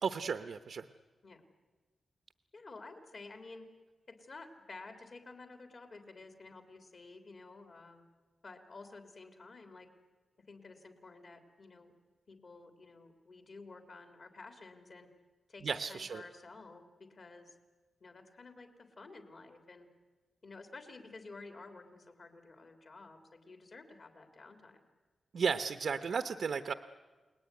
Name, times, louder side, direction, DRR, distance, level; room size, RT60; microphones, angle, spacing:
voice 1, 0.0-0.9 15.6-16.2 25.3-26.7, right 6 dB, 65° right, 9 dB, 0.9 m, -34 dB
voice 2, 2.5-3.7 4.1-8.1 8.4-9.9 10.4-11.9 12.3-15.1 15.5-17.5 18.0-19.9 20.4-24.9, left 3 dB, 45° left, 6 dB, 3.3 m, -52 dB
30.0 x 20.0 x 9.6 m, 1.4 s
wide cardioid pair, 140°, 0 cm